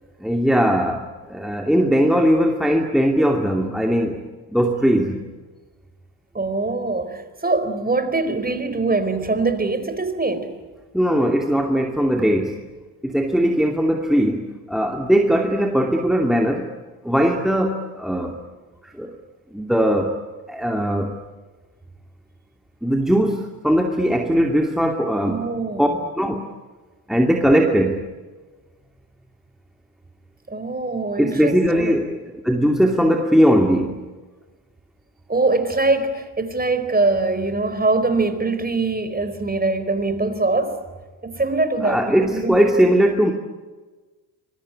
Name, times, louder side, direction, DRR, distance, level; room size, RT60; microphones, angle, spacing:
voice 1, 0.2-4.2 4.5-5.2 10.9-12.6 13.0-16.7 17.0-18.4 18.8-19.2 19.5-20.1 20.5-21.2 22.8-25.4 25.8-25.9 26.2-26.5 27.1-28.0 31.2-34.0 41.8-43.3, equal, ahead, 2 dB, 2.6 m, -19 dB
voice 2, 6.3-10.5 25.3-26.1 30.5-31.9 35.3-40.8 41.2-42.6, right 3 dB, 20° right, 10 dB, 4.3 m, -23 dB
26.0 x 22.5 x 9.7 m, 1.3 s
supercardioid pair, 80°, 48 cm